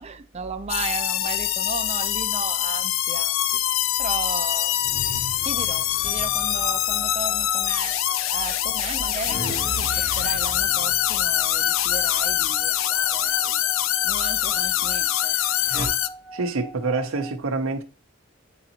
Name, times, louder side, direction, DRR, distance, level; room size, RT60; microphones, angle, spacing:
voice 1, 0.0-3.3 4.0-4.8 5.1-8.0 8.3-15.4, right 4 dB, 30° right, 0.5 m, -35 dB
sound 1, 0.7-16.1, left 13 dB, 70° left, 0.3 m, -24 dB
sound 2, 4.8-8.1 8.6-12.9 13.2-13.5 14.3-15.9, equal, 50° left, 1.3 m, -38 dB
sound 3, 6.0-17.3, right 2 dB, 30° left, 2.0 m, -42 dB
voice 2, 16.3-17.8, right 3 dB, 90° right, 0.7 m, -26 dB
9.1 x 3.9 x 2.8 m
head